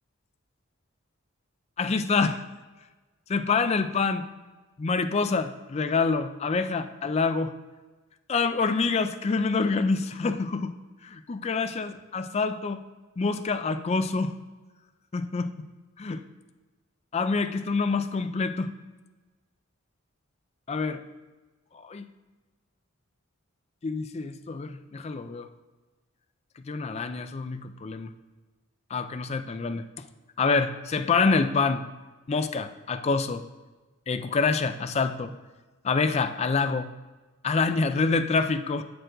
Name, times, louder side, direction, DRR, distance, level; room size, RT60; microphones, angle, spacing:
voice 1, 1.8-2.4 3.3-4.3 4.8-7.5 8.3-10.7 11.0-12.8 13.2-14.3 15.1-15.7 16.0-16.2 17.1-18.7 20.7-21.0 21.7-22.1 23.8-25.5 26.7-28.1 28.9-30.0 30.4-31.8 32.3-33.4 34.1-35.3 35.8-36.9 37.4-38.8, left 4 dB, 30° left, 9 dB, 0.4 m, -26 dB
7.8 x 6.7 x 3.9 m, 1.2 s
head